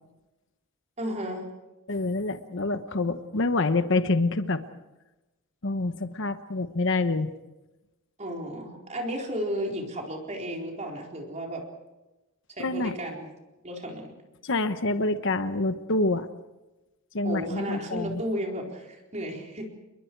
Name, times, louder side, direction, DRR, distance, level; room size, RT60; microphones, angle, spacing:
voice 1, 1.0-1.5 8.2-11.6 12.5-13.3 13.6-14.1 17.2-19.7, equal, 35° right, 0 dB, 4.2 m, -33 dB
voice 2, 1.9-4.6 5.6-7.3 12.6-12.9 14.4-16.3 17.1-18.2, left 2 dB, 65° left, 9 dB, 1.1 m, -26 dB
30.0 x 22.0 x 4.7 m, 1.0 s
head